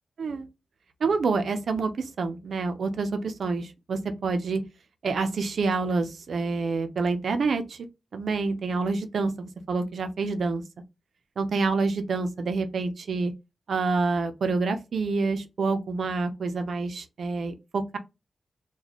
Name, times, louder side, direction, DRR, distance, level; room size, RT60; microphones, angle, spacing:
voice 1, 1.0-4.6 5.0-7.9 8.1-10.6 11.4-13.3 13.7-18.0, right 4 dB, 75° right, 0.5 m, -27 dB
4.0 x 2.2 x 2.9 m
wide cardioid pair, 130°, 0 cm